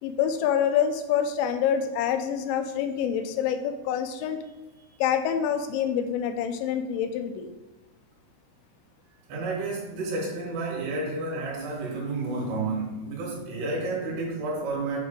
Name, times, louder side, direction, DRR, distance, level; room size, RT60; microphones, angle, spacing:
voice 1, 0.0-4.4 5.0-7.5, left 8 dB, 85° left, 7 dB, 2.8 m, -26 dB
voice 2, 9.3-15.0, right 3 dB, 65° right, -3 dB, 3.7 m, -31 dB
8.1 x 3.2 x 5.0 m, 1.1 s
omnidirectional pair, 5.4 m